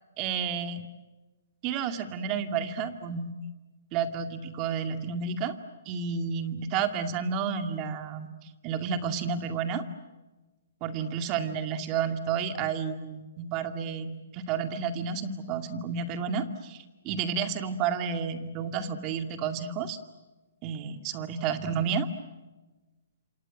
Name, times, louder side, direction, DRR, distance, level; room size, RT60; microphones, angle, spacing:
voice 1, 0.2-0.8 1.6-3.3 3.9-5.5 5.9-9.8 10.8-20.0 20.6-22.1, right 6 dB, 30° right, 7 dB, 2.3 m, -31 dB
28.0 x 26.5 x 7.7 m, 1.2 s
hypercardioid pair, 140°, 0 cm